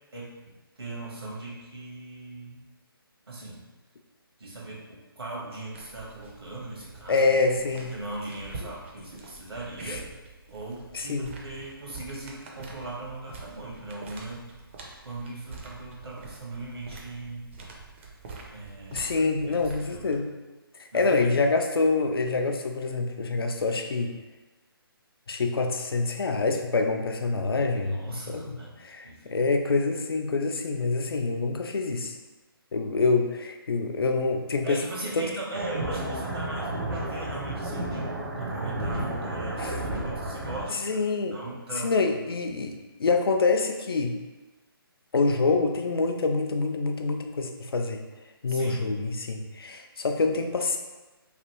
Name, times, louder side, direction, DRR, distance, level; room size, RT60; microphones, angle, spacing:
voice 1, 0.1-2.6 3.3-3.6 4.4-7.3 7.7-10.0 10.5-14.4 15.0-17.5 18.5-19.1 19.5-20.2 20.9-21.3 27.8-28.7 29.0-29.4 33.0-33.1 34.6-42.2 48.5-48.9, right 2 dB, 80° right, -4 dB, 1.2 m, -39 dB
sound 1, 5.7-20.2, right 4 dB, 30° right, 0.4 m, -46 dB
voice 2, 7.1-7.9 9.9-10.0 10.9-11.3 18.9-20.3 20.9-24.2 25.3-32.2 32.7-34.8 35.2-35.3 39.6-39.7 40.7-41.4 41.8-42.7 43.0-44.2 45.1-48.0 48.4-50.8, left 3 dB, 70° left, 5 dB, 0.4 m, -26 dB
sound 2, 35.5-40.6, right 1 dB, 65° right, 0.8 m, -32 dB
3.2 x 2.5 x 2.9 m, 1.2 s
figure-of-eight pair, 145°, 13 cm